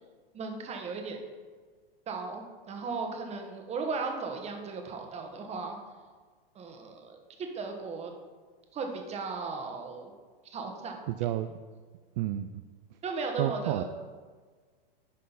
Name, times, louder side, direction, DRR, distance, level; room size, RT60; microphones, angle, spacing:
voice 1, 0.3-1.2 2.1-5.8 6.5-8.1 8.7-10.1 10.4-11.0 13.0-13.8, right 4 dB, 20° right, 3 dB, 1.3 m, -36 dB
voice 2, 11.1-11.5 12.2-12.5 13.4-13.8, right 13 dB, 45° right, 9 dB, 0.4 m, -30 dB
9.9 x 5.4 x 4.1 m, 1.5 s
hypercardioid pair, 120°, 29 cm